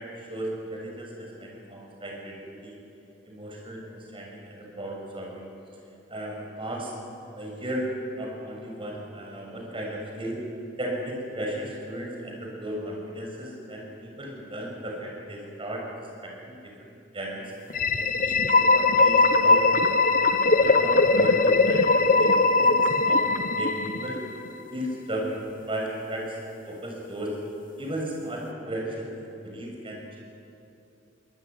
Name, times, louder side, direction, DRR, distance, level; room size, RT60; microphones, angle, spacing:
voice 1, 0.0-2.8 3.3-5.5 6.1-6.9 7.3-7.9 8.2-10.4 10.8-15.9 16.2-17.4 17.9-19.1 19.4-19.9 20.6-22.7 23.0-24.2 24.7-25.3 25.7-26.4 26.6-27.4 27.8-30.2, right 1 dB, 30° right, -1 dB, 6.5 m, -35 dB
sound 1, 17.7-24.5, left 3 dB, 45° left, 1.1 m, -20 dB
23.5 x 20.0 x 9.5 m, 2.8 s
head